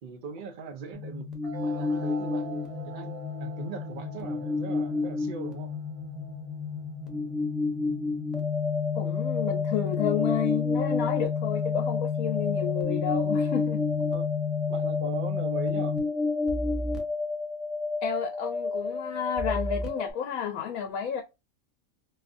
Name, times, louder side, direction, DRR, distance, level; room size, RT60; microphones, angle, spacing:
voice 1, 0.0-1.3 1.6-5.7 14.1-14.3 14.7-16.0, right 5 dB, 60° right, 0.5 m, -40 dB
sound 1, 0.9-20.1, left 4 dB, ahead, 0.3 m, -29 dB
sound 2, 1.4-8.4, right 3 dB, 25° right, 1.0 m, -45 dB
voice 2, 8.9-13.8 18.0-21.2, left 8 dB, 85° left, 1.0 m, -31 dB
4.0 x 2.4 x 2.5 m
omnidirectional pair, 1.4 m